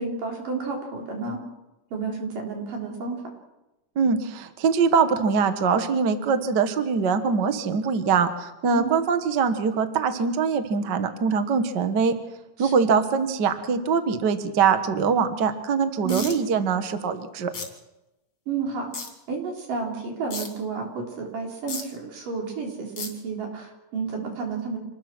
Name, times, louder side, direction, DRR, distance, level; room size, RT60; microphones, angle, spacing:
voice 1, 0.0-1.4 1.9-3.2 8.7-9.0 12.6-12.7 16.0-16.4 18.5-18.9 19.3-24.8, right 5 dB, 80° right, 1 dB, 5.4 m, -31 dB
voice 2, 3.9-12.1 12.6-17.5, right 5 dB, 45° right, 9 dB, 1.4 m, -23 dB
sound 1, 16.1-16.3 17.5-17.6 18.9-19.1 20.3-20.5 21.7-21.8 23.0-23.1, left 4 dB, 45° left, 4.4 m, -32 dB
27.0 x 20.0 x 6.1 m, 0.97 s
omnidirectional pair, 3.8 m